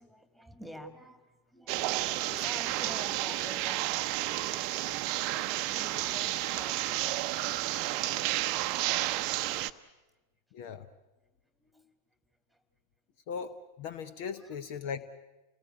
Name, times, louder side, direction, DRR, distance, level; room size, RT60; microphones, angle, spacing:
voice 1, 0.0-5.0 11.6-11.9 12.5-12.6 14.3-14.6, equal, ahead, 8 dB, 2.2 m, -50 dB
sound 1, 1.7-9.7, right 16 dB, 40° right, 0.7 m, -31 dB
voice 2, 10.5-10.9 13.3-15.1, left 6 dB, 50° left, 13 dB, 0.9 m, -38 dB
29.0 x 19.5 x 8.1 m, 1.2 s
figure-of-eight pair, 90°, 0 cm